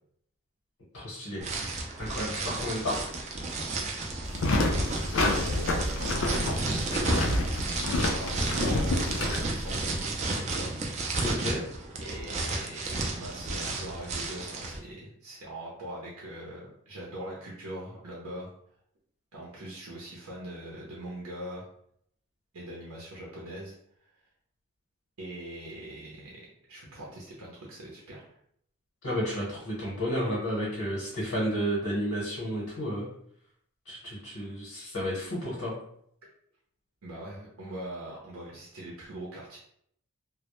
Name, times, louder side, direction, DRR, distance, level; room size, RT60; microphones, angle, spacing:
voice 1, 0.9-1.4 2.0-2.9 11.2-11.6 29.0-33.1 33.9-35.7, equal, 75° left, -6 dB, 0.9 m, -31 dB
sound 1, 1.4-14.8, right 2 dB, 30° right, 0.3 m, -32 dB
sound 2, 4.3-10.0, left 2 dB, 60° left, 0.4 m, -28 dB
voice 2, 4.6-6.2 6.6-7.2 7.9-10.7 12.0-18.5 19.3-21.7 22.5-23.7 25.2-26.4 26.7-28.4 36.2-36.3 37.0-39.6, right 1 dB, 85° right, -4 dB, 0.6 m, -42 dB
2.1 x 2.0 x 2.9 m, 0.68 s
head